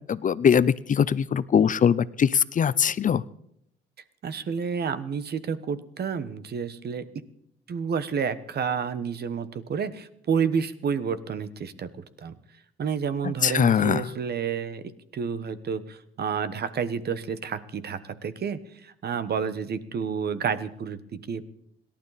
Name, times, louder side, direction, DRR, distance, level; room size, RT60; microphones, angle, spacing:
voice 1, 0.1-3.2 13.2-14.1, left 7 dB, 40° left, 18 dB, 0.6 m, -22 dB
voice 2, 4.2-7.1 7.7-11.9 12.2-12.3 12.8-14.8 15.1-21.4, right 6 dB, 55° right, 14 dB, 1.2 m, -30 dB
27.0 x 12.0 x 4.1 m, 0.72 s
cardioid pair, 90°, 20 cm